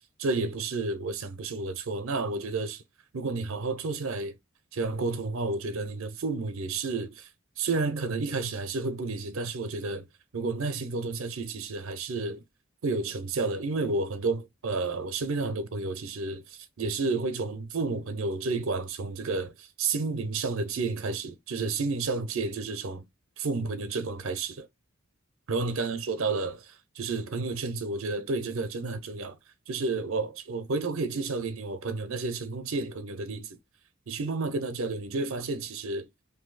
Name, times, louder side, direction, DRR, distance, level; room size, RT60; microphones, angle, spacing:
voice 1, 0.2-2.8 3.1-4.4 4.7-7.3 7.6-10.1 10.3-12.4 12.8-23.0 23.4-24.7 25.5-29.4 29.7-33.6 34.1-36.1, right 3 dB, 70° right, 0.5 m, -31 dB
2.6 x 2.6 x 3.8 m
head